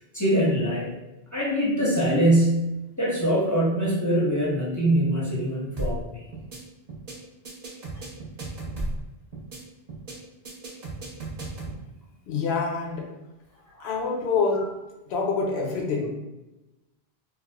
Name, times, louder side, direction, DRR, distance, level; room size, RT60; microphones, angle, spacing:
voice 1, 0.1-0.9 1.3-6.2 13.8-13.9 14.5-14.6, right 1 dB, 20° left, -7 dB, 0.6 m, -23 dB
sound 1, 5.8-6.0 6.3-6.6 6.9-7.1 7.4-9.0 9.3-9.6 9.9-10.1 10.4-11.8, right 2 dB, 45° right, 0.7 m, -33 dB
voice 2, 12.3-13.1 13.8-14.6 15.1-16.1, left 4 dB, 80° left, 0 dB, 0.9 m, -26 dB
4.5 x 2.0 x 2.2 m, 1.0 s
omnidirectional pair, 1.1 m